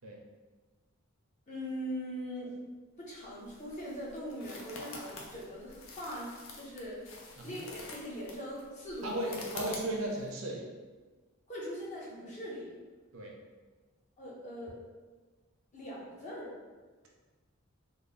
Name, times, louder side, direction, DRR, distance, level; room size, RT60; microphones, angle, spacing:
voice 1, 1.5-2.5 3.0-7.1 7.4-9.2 11.5-12.7 14.2-14.8 15.7-16.6, equal, 35° left, -5 dB, 0.8 m, -41 dB
sound 1, 3.1-10.3, left 3 dB, 65° left, 0.6 m, -47 dB
voice 2, 9.0-10.6 13.1-13.3, right 1 dB, 70° right, -1 dB, 0.6 m, -35 dB
3.3 x 2.1 x 4.0 m, 1.3 s
head